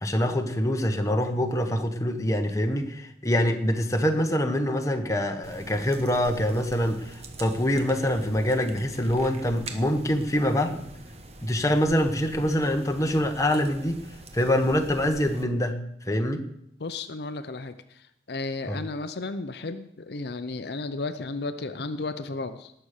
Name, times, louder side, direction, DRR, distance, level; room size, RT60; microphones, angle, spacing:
voice 1, 0.0-10.8 11.4-14.0 14.3-15.8 16.0-16.4 18.7-18.8, equal, 20° left, 5 dB, 1.2 m, -25 dB
sound 1, 5.4-15.4, right 2 dB, 35° right, 1.2 m, -44 dB
voice 2, 16.8-22.7, left 3 dB, 65° left, 10 dB, 0.7 m, -34 dB
18.5 x 6.8 x 6.6 m, 0.76 s
head